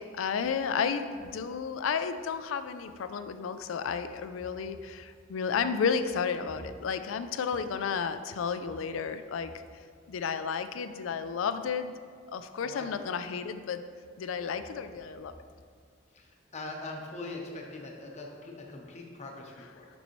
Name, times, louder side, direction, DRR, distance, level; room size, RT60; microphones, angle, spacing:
voice 1, 0.0-9.5 10.1-11.9 12.3-13.9 14.2-15.3, left 6 dB, 85° left, 10 dB, 0.4 m, -32 dB
voice 2, 16.1-19.9, left 2 dB, 35° left, 0 dB, 0.8 m, -42 dB
6.9 x 5.4 x 3.1 m, 2.1 s
head